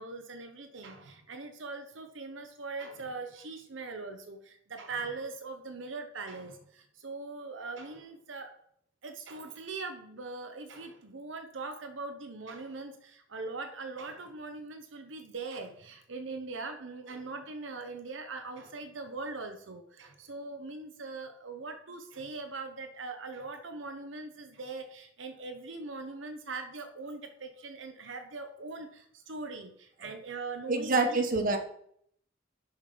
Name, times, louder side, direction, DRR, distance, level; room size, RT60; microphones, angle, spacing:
voice 1, 0.0-8.5 9.0-31.2, right 3 dB, 70° right, 6 dB, 0.9 m, -41 dB
voice 2, 30.7-31.6, right 3 dB, 45° right, 4 dB, 1.0 m, -27 dB
6.9 x 6.1 x 5.1 m, 0.67 s
head